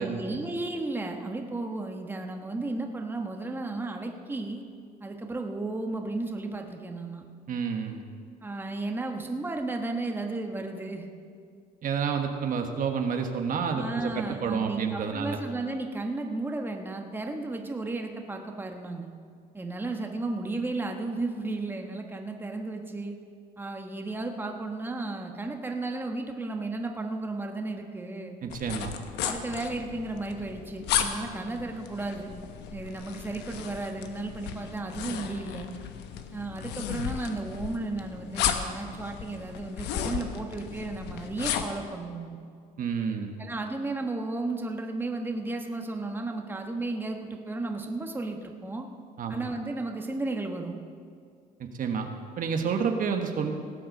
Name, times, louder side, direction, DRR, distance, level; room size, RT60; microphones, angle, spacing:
voice 1, 0.0-4.6 5.0-7.2 8.4-11.1 13.7-19.1 19.5-23.2 23.6-28.4 29.2-32.3 32.7-35.7 36.3-42.4 43.4-48.9 49.3-50.8, right 2 dB, 10° right, 3 dB, 1.2 m, -34 dB
voice 2, 7.5-8.0 11.8-15.4 28.4-28.9 42.8-43.4 49.2-49.4 51.6-52.1 52.4-53.5, right 6 dB, 55° right, 5 dB, 1.4 m, -29 dB
sound 1, 28.5-41.8, left 9 dB, 85° left, 1.0 m, -34 dB
18.0 x 7.8 x 6.5 m, 2.2 s
cardioid pair, 110°, 17 cm